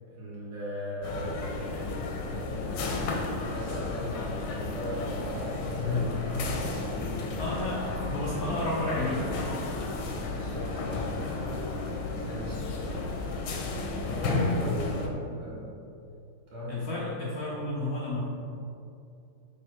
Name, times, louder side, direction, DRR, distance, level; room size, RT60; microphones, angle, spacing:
voice 1, 0.1-3.1 3.4-7.4 8.0-9.2 10.3-11.0 12.2-13.1 14.0-15.7 16.5-16.7, equal, 65° right, -7 dB, 2.4 m, -38 dB
sound 1, 1.0-15.1, left 3 dB, 90° left, 1.5 m, -33 dB
sound 2, 1.0-14.3, right 3 dB, 90° right, 1.4 m, -46 dB
voice 2, 5.8-6.1 7.3-9.5 14.1-14.6 16.7-18.3, left 2 dB, 65° left, -4 dB, 0.9 m, -32 dB
6.3 x 3.5 x 4.5 m, 2.6 s
omnidirectional pair, 2.2 m